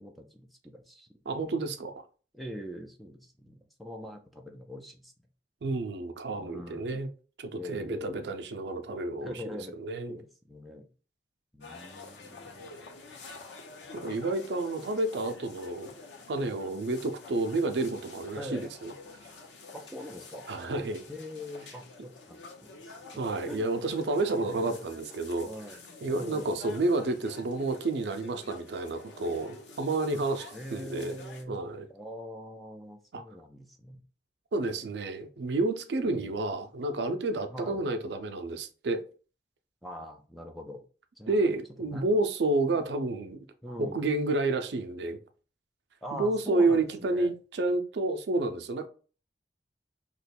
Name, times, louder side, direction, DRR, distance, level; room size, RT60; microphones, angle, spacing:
voice 1, 0.0-1.7 2.3-5.1 6.4-7.0 7.5-8.3 9.2-9.8 10.1-10.9 11.5-12.6 13.8-14.0 18.3-18.7 19.7-20.5 21.1-23.0 23.5-23.7 24.3-24.8 25.4-26.6 30.5-31.6 31.9-34.0 36.1-36.4 37.5-37.8 39.8-40.8 41.2-41.4 41.8-42.1 43.6-44.0 46.0-47.3, left 1 dB, ahead, 0.4 m, -43 dB
voice 2, 1.3-1.9 5.6-7.1 7.4-9.4 9.8-10.2 13.9-15.9 16.3-18.9 20.5-21.0 22.9-25.5 26.0-31.2 31.5-31.9 33.1-33.2 34.5-39.0 41.3-43.4 43.8-45.2 46.1-48.9, right 2 dB, 70° right, 0.5 m, -30 dB
sound 1, 11.6-31.4, left 3 dB, 85° left, 0.8 m, -48 dB
2.9 x 2.2 x 4.2 m
head